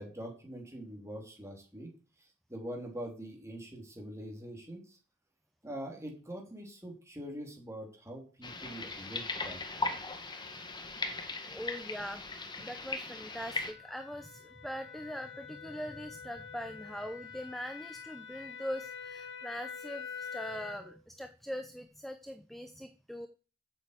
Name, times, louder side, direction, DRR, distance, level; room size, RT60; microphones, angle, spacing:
voice 1, 0.0-1.9 2.5-5.0 5.6-9.9, equal, 15° right, 1 dB, 3.5 m, -44 dB
sound 1, 8.4-13.7, left 3 dB, 20° left, 1.4 m, -38 dB
sound 2, 11.0-20.9, left 6 dB, 60° left, 2.0 m, -47 dB
voice 2, 11.4-12.2 12.6-23.3, equal, ahead, 8 dB, 0.7 m, -42 dB
8.3 x 7.1 x 8.2 m, 0.37 s
head